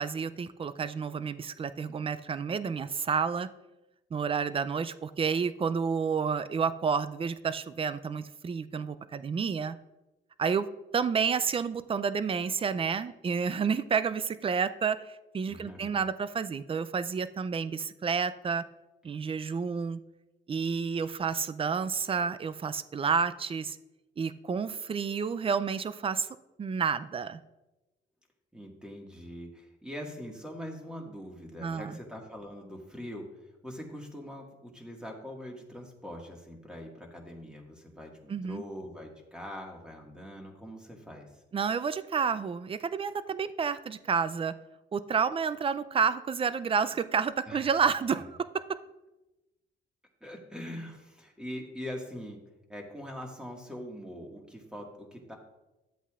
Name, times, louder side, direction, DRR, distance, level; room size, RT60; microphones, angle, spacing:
voice 1, 0.0-3.5 4.1-9.8 10.4-10.7 10.9-18.6 19.0-20.0 20.5-23.8 24.2-26.3 26.6-27.4 31.6-32.0 38.3-38.6 41.5-44.5 44.9-48.2, right 6 dB, 30° right, 14 dB, 0.4 m, -30 dB
voice 2, 15.5-16.0 28.5-33.3 33.6-41.3 47.5-47.7 48.1-48.2 50.2-52.4 52.7-55.4, equal, 5° right, 1 dB, 1.8 m, -42 dB
12.5 x 8.1 x 2.4 m, 1.0 s
cardioid pair, 90°, 20 cm